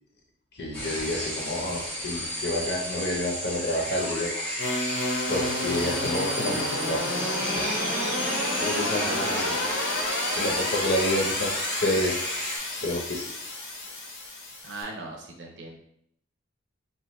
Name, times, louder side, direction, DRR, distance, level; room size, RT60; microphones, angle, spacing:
voice 1, 0.5-4.4 5.3-7.0 7.5-7.7 8.6-9.5 10.4-12.2 12.8-13.3, left 1 dB, 50° left, 0 dB, 0.6 m, -29 dB
sound 1, 0.7-12.6, equal, 5° left, 0.7 m, -32 dB
sound 2, 4.6-14.8, left 1 dB, 85° left, 0.8 m, -30 dB
voice 2, 8.7-9.7 14.6-15.8, right 2 dB, 55° right, 0 dB, 0.6 m, -37 dB
2.9 x 2.3 x 3.0 m, 0.72 s
head